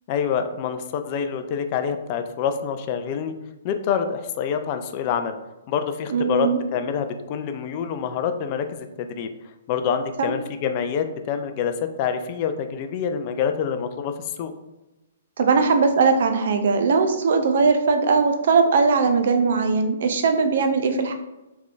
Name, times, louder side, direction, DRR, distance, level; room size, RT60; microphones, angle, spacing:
voice 1, 0.1-3.3 3.6-5.3 5.7-9.3 9.7-11.7 12.0-14.1 14.4-14.5, left 7 dB, 40° left, 8 dB, 0.4 m, -26 dB
voice 2, 6.1-6.6 10.2-10.3 15.4-21.1, right 4 dB, 55° right, 6 dB, 0.5 m, -20 dB
3.7 x 3.5 x 3.1 m, 1.0 s
figure-of-eight pair, 120°, 0 cm